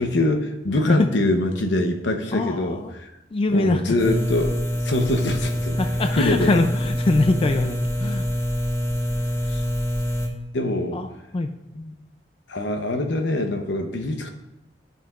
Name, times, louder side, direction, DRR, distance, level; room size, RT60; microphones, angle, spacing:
voice 1, 0.0-3.1 3.5-4.6 4.8-5.8 6.1-6.6 9.5-9.6 10.5-11.0 11.7-11.9 12.5-14.3, left 1 dB, 75° left, 5 dB, 0.9 m, -24 dB
voice 2, 2.3-2.9 3.3-3.8 5.8-8.3 10.9-11.1 11.3-11.5, left 2 dB, 30° left, 6 dB, 0.4 m, -22 dB
sound 1, 4.0-10.3, equal, 15° left, 0.9 m, -25 dB
12.5 x 5.7 x 2.4 m, 0.89 s
head